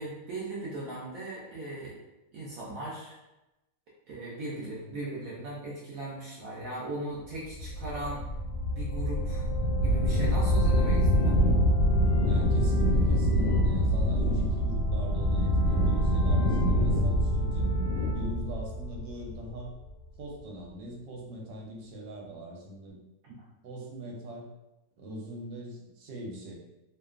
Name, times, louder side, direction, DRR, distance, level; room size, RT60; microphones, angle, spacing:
voice 1, 0.0-1.9 2.3-3.1 4.1-8.2 8.7-9.5 9.8-11.4 23.2-23.3, right 2 dB, 70° right, -6 dB, 0.8 m, -38 dB
sound 1, 7.6-19.6, equal, 85° left, 1.3 m, -25 dB
voice 2, 12.2-17.7 18.1-19.7 20.2-23.0 23.6-24.5 25.0-26.6, equal, 85° right, -2 dB, 1.3 m, -41 dB
2.8 x 2.2 x 2.3 m, 0.98 s
omnidirectional pair, 1.9 m